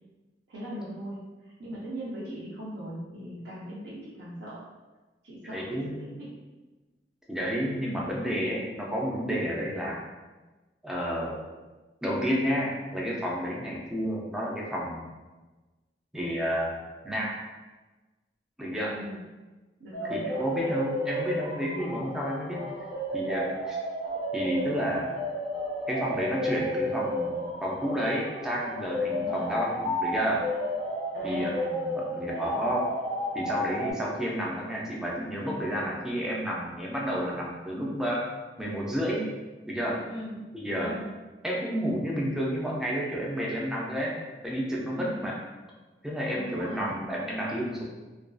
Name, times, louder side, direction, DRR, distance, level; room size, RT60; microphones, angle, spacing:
voice 1, 0.5-4.6 5.2-6.3 7.8-8.1 18.9-19.2 19.8-20.9 29.0-29.5 31.1-32.6 40.1-40.4 40.8-41.1 44.9-45.3 46.3-46.9, equal, 70° right, -7 dB, 0.5 m, -40 dB
voice 2, 5.5-6.0 7.3-10.0 10.8-11.4 12.0-15.1 16.1-16.8 17.0-17.4 18.6-18.9 20.1-22.6 23.1-23.8 24.3-25.1 25.9-30.4 31.2-31.8 32.2-32.9 33.3-38.3 38.6-39.3 39.6-40.0 40.5-40.9 41.4-44.2 44.4-45.3 46.0-47.8, equal, 5° right, -4 dB, 0.4 m, -30 dB
sound 1, 19.9-33.9, equal, 75° left, 0.7 m, -32 dB
2.5 x 2.3 x 2.3 m, 1.2 s
head